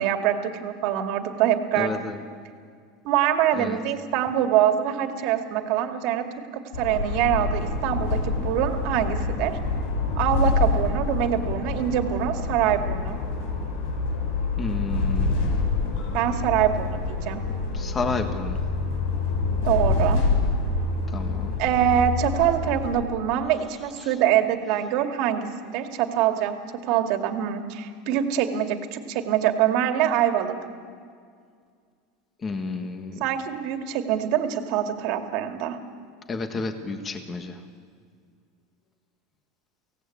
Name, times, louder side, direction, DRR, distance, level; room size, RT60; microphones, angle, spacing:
voice 1, 0.0-1.9 3.0-6.2 6.8-9.6 10.2-13.2 16.1-17.4 19.6-20.2 21.6-26.6 26.9-30.6 33.2-35.8, right 10 dB, 55° right, 6 dB, 2.1 m, -24 dB
voice 2, 1.7-2.2 3.6-3.8 14.6-15.6 17.7-18.6 21.1-21.6 32.4-33.2 36.3-37.6, left 3 dB, 20° left, 7 dB, 1.6 m, -31 dB
sound 1, 6.7-23.0, left 3 dB, 80° left, 5.7 m, -26 dB
24.0 x 17.0 x 8.5 m, 2.1 s
supercardioid pair, 140°, 0 cm